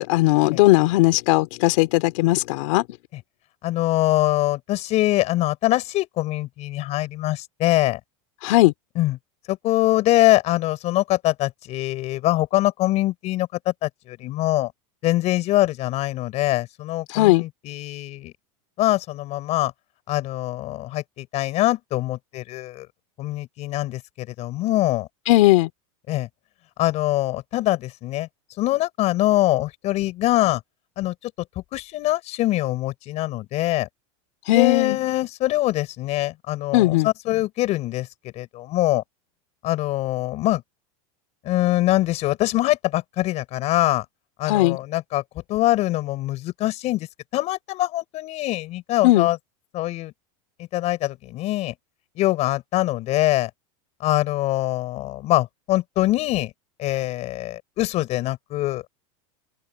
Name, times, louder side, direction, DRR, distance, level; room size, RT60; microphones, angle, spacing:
voice 1, 0.0-2.8 8.4-8.7 17.1-17.4 25.3-25.7 34.5-35.0 36.7-37.1 44.5-44.8 49.0-49.3, left 18 dB, 65° left, 2.9 m, -18 dB
voice 2, 3.6-8.0 8.9-9.2 9.5-14.7 15.0-18.3 18.8-19.7 20.1-22.9 23.2-25.1 26.1-26.3 26.8-28.3 28.6-30.6 31.0-33.9 34.5-39.0 39.6-40.6 41.4-44.0 44.4-45.2 45.5-47.1 47.3-49.4 49.7-50.1 50.6-51.7 52.2-53.5 54.0-56.5 56.8-58.9, left 16 dB, 40° left, 6.8 m, -23 dB
open air
supercardioid pair, 145°, 17 cm